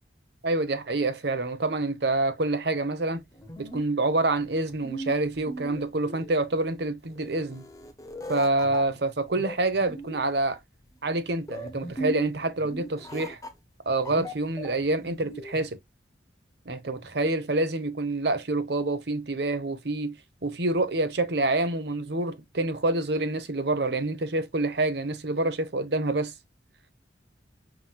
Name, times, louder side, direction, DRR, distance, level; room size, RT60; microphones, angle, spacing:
voice 1, 0.4-3.2 3.6-7.6 8.3-10.6 11.0-13.4 13.9-15.8 16.7-20.1 20.4-26.3, right 2 dB, 60° right, 0.9 m, -27 dB
sound 1, 3.2-15.7, right 1 dB, 20° left, 0.7 m, -40 dB
5.8 x 3.0 x 2.2 m
head